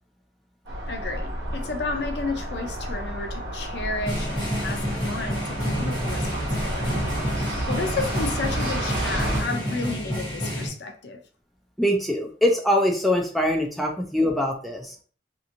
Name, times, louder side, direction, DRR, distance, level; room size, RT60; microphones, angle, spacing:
sound 1, 0.7-9.4, right 1 dB, 90° right, 1.0 m, -31 dB
voice 1, 0.9-7.0 7.7-11.2, left 3 dB, 75° left, 0.5 m, -32 dB
sound 2, 4.1-10.7, equal, 25° left, 0.9 m, -29 dB
voice 2, 11.8-15.0, left 1 dB, ahead, 0.4 m, -23 dB
2.8 x 2.5 x 2.5 m
head